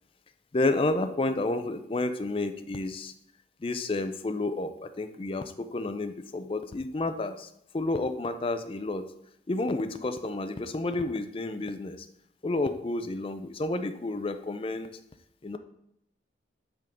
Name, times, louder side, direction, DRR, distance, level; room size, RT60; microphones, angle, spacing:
voice 1, 0.5-3.1 3.6-9.1 9.5-12.1 12.4-14.9 15.4-15.6, left 2 dB, 30° left, 10 dB, 0.4 m, -30 dB
8.4 x 3.6 x 5.1 m, 0.78 s
head